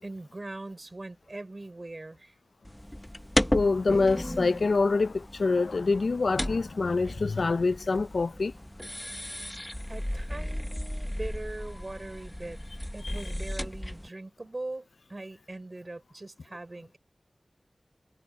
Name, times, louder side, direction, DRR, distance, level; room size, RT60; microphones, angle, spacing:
voice 1, 0.0-2.3 9.9-12.6 12.9-17.0, right 2 dB, 45° right, 4.6 m, -41 dB
sound 1, 2.6-14.1, equal, 10° left, 0.9 m, -34 dB
voice 2, 3.5-8.5 13.0-13.1, left 3 dB, 85° left, 0.4 m, -25 dB
cardioid pair, 40°, 0 cm